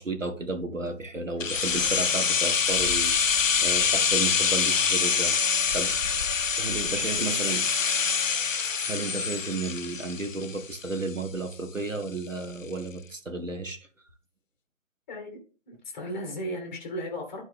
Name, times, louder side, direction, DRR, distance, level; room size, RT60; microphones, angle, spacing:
voice 1, 0.0-6.1 6.6-7.7 8.8-13.9, right 3 dB, 80° right, 1.6 m, -33 dB
sound 1, 1.4-11.2 11.5-11.6, left 6 dB, 85° left, 0.6 m, -25 dB
voice 2, 15.1-15.4 15.7-17.4, equal, 10° left, 1.0 m, -35 dB
11.0 x 4.4 x 3.5 m
figure-of-eight pair, 145°, 38 cm